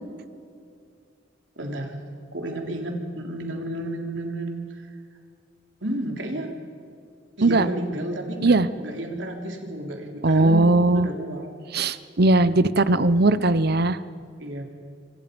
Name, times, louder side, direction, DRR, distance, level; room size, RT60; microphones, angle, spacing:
voice 1, 1.6-2.0 2.3-5.0 5.8-6.6 7.4-10.6 10.9-11.5 14.4-14.6, right 1 dB, 70° right, 2 dB, 3.6 m, -31 dB
voice 2, 10.2-11.1 11.7-14.0, right 2 dB, 55° right, 15 dB, 0.9 m, -19 dB
28.0 x 25.0 x 5.3 m, 2.4 s
head